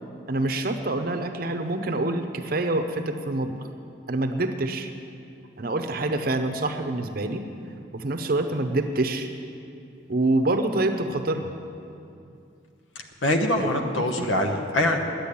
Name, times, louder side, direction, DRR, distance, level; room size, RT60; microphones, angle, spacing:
voice 1, 0.3-3.7 4.1-4.9 5.6-7.4 7.9-9.3 10.1-11.5 13.6-13.7 13.9-14.3, right 2 dB, 50° right, 6 dB, 0.7 m, -26 dB
voice 2, 13.0-15.0, left 1 dB, 85° left, 4 dB, 1.1 m, -24 dB
10.0 x 8.4 x 9.9 m, 2.5 s
head